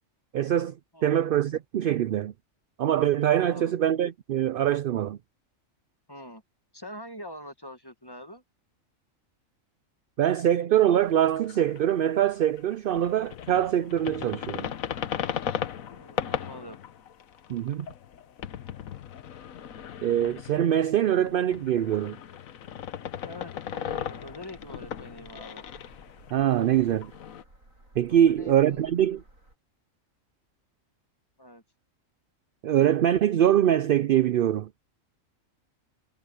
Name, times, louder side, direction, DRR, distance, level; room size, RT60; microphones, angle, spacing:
voice 1, 0.3-2.3 2.8-5.2 10.2-14.7 17.5-17.9 20.0-22.2 26.3-27.1 28.0-29.2 32.6-34.7, right 11 dB, 65° right, 0.5 m, -23 dB
voice 2, 6.1-6.4 6.7-8.4 15.9-16.8 23.2-25.6 28.1-28.9 31.4-31.6, left 1 dB, 20° left, 1.2 m, -44 dB
sound 1, 11.0-12.3 12.6-27.4, left 9 dB, 90° left, 1.3 m, -37 dB
sound 2, 24.2-29.6, right 1 dB, 85° right, 8.6 m, -56 dB
omnidirectional pair, 1.4 m